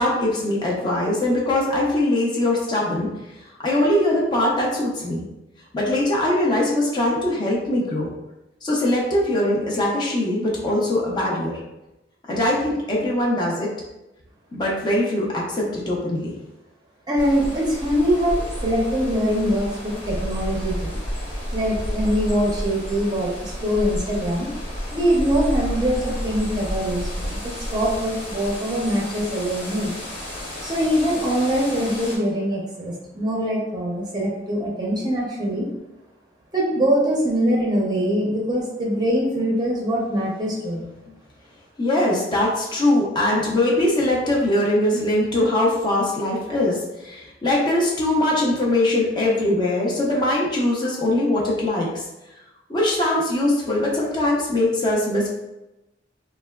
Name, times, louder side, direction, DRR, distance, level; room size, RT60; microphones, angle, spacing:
voice 1, 0.0-3.1 3.3-5.2 5.7-8.1 8.6-11.6 12.3-13.7 14.5-16.3 41.1-41.2 41.8-52.1 52.7-55.3, left 1 dB, 25° left, -4 dB, 0.5 m, -21 dB
voice 2, 17.1-21.0 21.5-24.5 24.9-30.0 30.6-35.7 36.5-40.9, equal, 25° right, -3 dB, 0.5 m, -23 dB
sound 1, 17.2-32.2, equal, 70° left, 1.2 m, -31 dB
3.1 x 2.1 x 2.2 m, 0.96 s
head